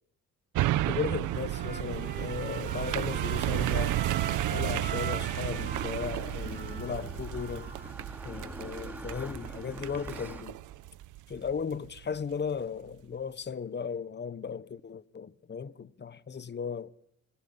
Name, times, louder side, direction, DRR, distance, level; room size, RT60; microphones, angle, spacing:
sound 1, 0.6-12.0 12.5-12.6, right 14 dB, 80° right, 0.9 m, -33 dB
voice 1, 0.9-4.0 4.5-7.7 8.2-10.6 11.3-16.9, left 6 dB, 35° left, 1.2 m, -36 dB
Trumpet, 1.3-7.9, right 5 dB, 30° right, 4.2 m, -42 dB
sound 2, 4.5-10.4, right 1 dB, 5° right, 2.8 m, -44 dB
25.5 x 17.0 x 9.6 m
cardioid pair, 90°, 30 cm